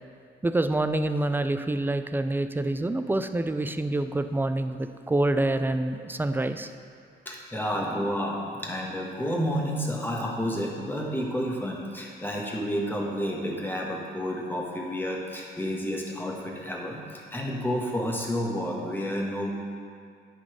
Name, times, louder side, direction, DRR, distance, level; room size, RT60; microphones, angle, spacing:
voice 1, 0.4-6.7, right 2 dB, 10° right, 9 dB, 0.3 m, -27 dB
voice 2, 7.2-19.5, equal, 10° left, -2 dB, 1.4 m, -30 dB
9.8 x 4.1 x 5.0 m, 2.3 s
cardioid pair, 90°, 20 cm